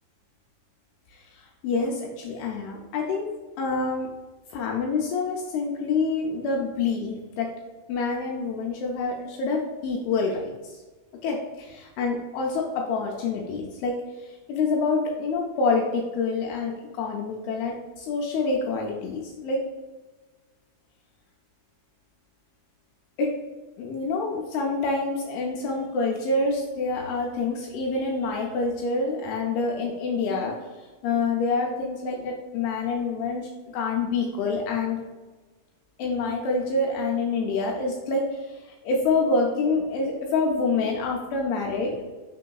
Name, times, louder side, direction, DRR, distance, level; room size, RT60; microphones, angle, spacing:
voice 1, 1.6-3.3 3.6-4.1 4.5-7.5 7.9-10.5 11.2-13.9 14.5-19.6 23.2-23.3 23.8-30.6 31.0-35.0 36.0-38.4 38.9-41.9, left 3 dB, 80° left, 0 dB, 2.3 m, -27 dB
5.7 x 3.7 x 2.3 m, 1.3 s
omnidirectional pair, 4.8 m